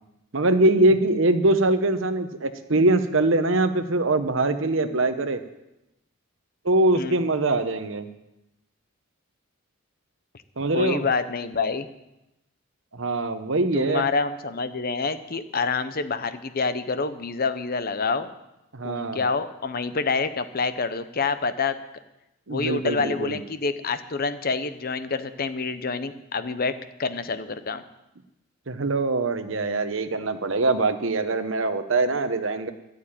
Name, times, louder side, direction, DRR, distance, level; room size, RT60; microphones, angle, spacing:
voice 1, 0.3-5.4 6.6-8.1 10.6-11.0 12.9-14.0 18.7-19.2 22.5-23.4 28.7-32.7, right 2 dB, 65° right, 9 dB, 1.0 m, -23 dB
voice 2, 10.7-11.9 13.7-18.3 18.8-21.8 22.5-27.8, left 4 dB, 45° left, 11 dB, 0.8 m, -27 dB
12.5 x 8.6 x 9.0 m, 0.91 s
head